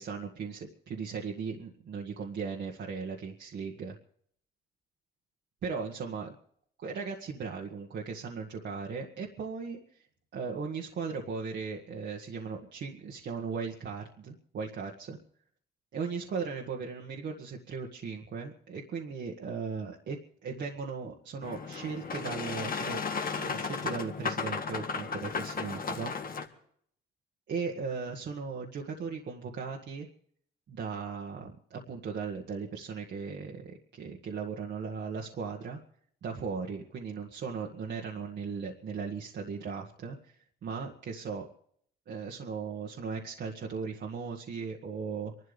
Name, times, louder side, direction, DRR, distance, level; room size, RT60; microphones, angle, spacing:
voice 1, 0.0-4.0 5.6-6.3 6.8-9.8 10.3-15.2 15.9-23.0 23.3-26.1 27.5-30.1 30.7-35.8 36.2-41.5 42.1-45.3, right 5 dB, 60° right, 0 dB, 1.8 m, -37 dB
Boat Water vehicle, 21.4-26.5, left 5 dB, 45° left, 1.7 m, -34 dB
26.5 x 12.5 x 3.5 m, 0.64 s
cardioid pair, 90°, 20 cm